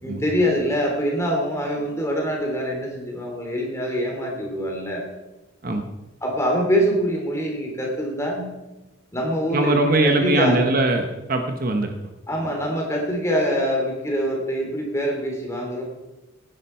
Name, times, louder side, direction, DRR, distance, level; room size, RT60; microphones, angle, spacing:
voice 1, 0.0-5.0 6.2-8.4 9.1-10.6 12.3-15.8, equal, 15° left, 0 dB, 3.0 m, -24 dB
voice 2, 9.5-11.9, right 2 dB, 40° right, 5 dB, 1.1 m, -21 dB
16.5 x 9.9 x 4.5 m, 1.1 s
head